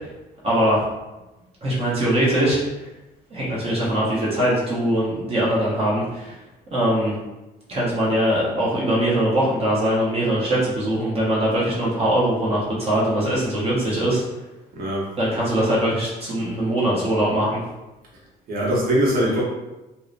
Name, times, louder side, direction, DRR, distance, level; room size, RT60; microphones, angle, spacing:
voice 1, 0.4-0.8 1.6-2.6 3.3-6.4 6.7-7.2 7.7-14.2 15.2-17.6, right 1 dB, 35° right, -7 dB, 0.8 m, -21 dB
voice 2, 14.7-15.1 18.5-19.4, equal, 60° right, -4 dB, 0.9 m, -21 dB
2.7 x 2.0 x 2.4 m, 1.0 s
cardioid pair, 110°, 17 cm